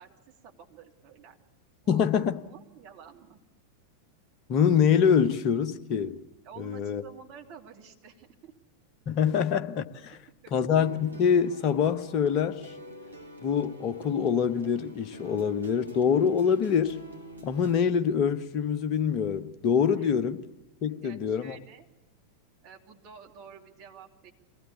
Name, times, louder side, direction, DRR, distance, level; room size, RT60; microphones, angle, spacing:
voice 1, 0.0-1.4 1.8-3.4 6.4-8.5 10.3-10.5 19.9-20.1 21.0-21.9 22.6-24.3, right 7 dB, 40° right, 2.8 m, -50 dB
voice 2, 1.9-2.4 4.5-6.2 6.6-7.0 9.1-10.2 10.5-12.7 13.4-17.0 17.4-20.4 20.8-21.6, left 7 dB, 40° left, 1.0 m, -25 dB
sound 1, 10.7-17.8, equal, 80° right, 1.3 m, -47 dB
23.0 x 17.0 x 8.4 m
figure-of-eight pair, 90°, 0 cm